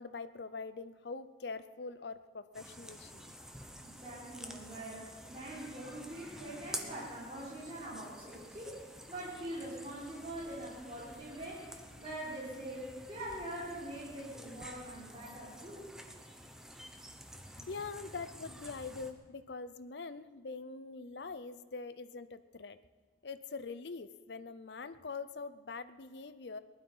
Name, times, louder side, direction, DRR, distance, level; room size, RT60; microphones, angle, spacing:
voice 1, 0.0-3.3 17.6-22.8 23.2-26.6, left 4 dB, 70° left, 13 dB, 0.6 m, -44 dB
sound 1, 2.5-19.1, equal, 5° right, 0.9 m, -50 dB
voice 2, 3.8-15.9, right 1 dB, 30° right, -8 dB, 4.0 m, -44 dB
19.5 x 12.0 x 5.6 m, 1.4 s
head